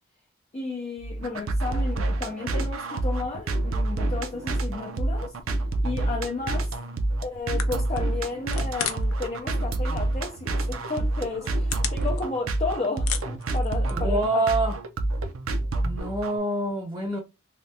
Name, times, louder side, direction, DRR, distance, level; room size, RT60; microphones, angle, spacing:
voice 1, 0.5-5.3 5.8-6.8 7.2-14.4, left 3 dB, 30° left, 0.5 m, -33 dB
sound 1, 1.0-16.4, right 2 dB, 75° right, 0.6 m, -27 dB
sound 2, 7.6-9.2 9.5-10.1 10.6-10.7 11.2-12.6 12.9-14.2, left 9 dB, 90° left, 0.6 m, -34 dB
voice 2, 13.9-14.7 15.8-17.2, right 2 dB, 15° right, 0.6 m, -26 dB
3.4 x 2.3 x 2.7 m
head